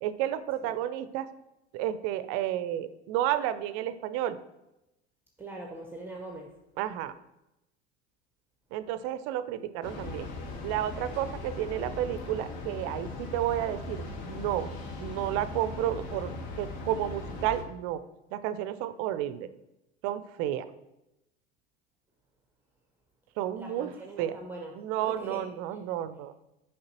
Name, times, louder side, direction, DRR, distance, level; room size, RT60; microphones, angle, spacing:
voice 1, 0.0-1.3 1.7-4.4 6.8-7.1 8.7-10.3 10.6-14.7 15.0-18.0 18.3-19.5 20.0-20.7 23.4-23.9 24.2-24.4 24.8-26.4, right 12 dB, 45° right, 14 dB, 0.5 m, -31 dB
voice 2, 5.4-6.5 23.6-24.7 25.0-25.5, right 2 dB, 5° right, 1 dB, 0.7 m, -41 dB
Train, 9.8-17.6, left 3 dB, 55° left, 1.1 m, -39 dB
6.5 x 5.4 x 2.9 m, 0.92 s
figure-of-eight pair, 75°, 34 cm